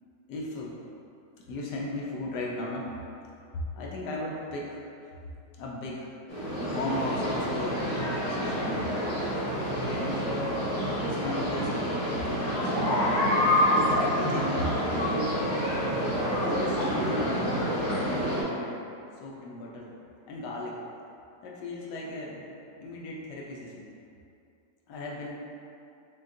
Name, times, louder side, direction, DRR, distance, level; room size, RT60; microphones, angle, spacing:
voice 1, 0.3-0.7 1.4-2.9 3.8-4.8 5.6-6.1 6.5-7.9 8.3-9.1 9.9-10.3 11.0-15.2 16.4-17.7 18.0-18.8 19.2-19.9 20.3-20.8 21.4-22.5 22.8-23.9 24.9-25.3, left 2 dB, 80° left, -3 dB, 1.2 m, -37 dB
sound 1, 6.3-18.4, equal, 25° left, 0.6 m, -27 dB
6.1 x 2.2 x 2.5 m, 2.6 s
omnidirectional pair, 1.8 m